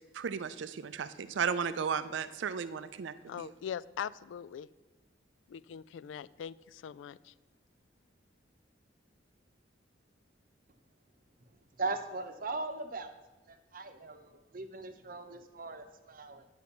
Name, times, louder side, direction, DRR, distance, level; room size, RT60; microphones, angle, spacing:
voice 1, 0.1-3.5, right 6 dB, 80° right, 13 dB, 0.4 m, -35 dB
voice 2, 3.3-4.7 5.5-7.3, left 8 dB, 90° left, 19 dB, 0.3 m, -41 dB
voice 3, 11.8-13.1 13.5-16.5, right 3 dB, 50° right, 8 dB, 0.7 m, -39 dB
9.9 x 6.3 x 5.8 m, 1.2 s
head